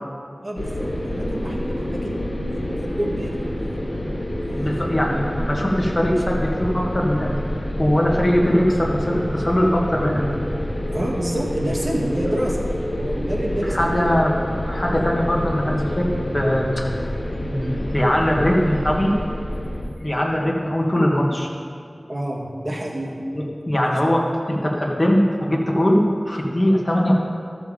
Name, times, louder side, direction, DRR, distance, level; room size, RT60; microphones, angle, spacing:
voice 1, 0.4-2.2 2.5-3.7 4.5-4.8 10.9-14.0 22.1-23.2, right 1 dB, 30° right, -3 dB, 2.0 m, -28 dB
sound 1, 0.6-19.9, left 1 dB, 65° left, 1.9 m, -27 dB
voice 2, 4.6-10.3 13.6-17.1 17.4-19.1 20.0-21.5 23.7-27.1, equal, 30° left, -2 dB, 1.8 m, -21 dB
13.5 x 7.0 x 5.0 m, 2.3 s
wide cardioid pair, 60°, 0 cm